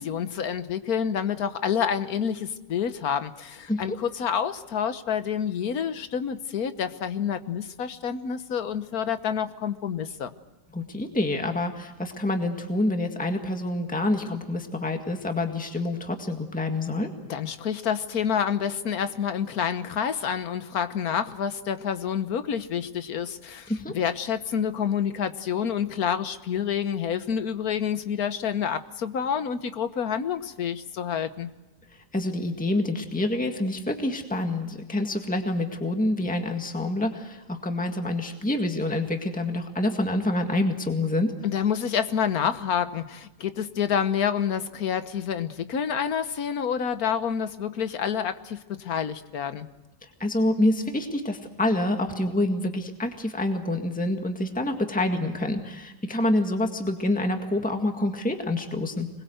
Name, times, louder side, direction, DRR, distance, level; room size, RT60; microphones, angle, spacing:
voice 1, 0.0-10.3 17.3-31.5 41.4-49.7, left 8 dB, 65° left, 10 dB, 1.6 m, -28 dB
voice 2, 10.7-17.1 23.7-23.9 32.1-41.3 50.2-59.1, left 1 dB, 5° left, 4 dB, 1.8 m, -27 dB
26.0 x 21.0 x 8.0 m, 1.0 s
omnidirectional pair, 1.7 m